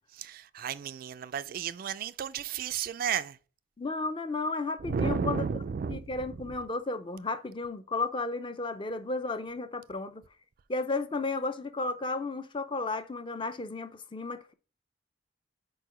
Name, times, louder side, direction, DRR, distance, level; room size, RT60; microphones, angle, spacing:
voice 1, 0.1-3.4 4.8-6.0, right 7 dB, 50° right, 0.3 m, -33 dB
voice 2, 3.8-5.4 5.9-10.2 10.7-14.5, left 3 dB, 25° left, 0.5 m, -33 dB
4.7 x 4.5 x 4.9 m
head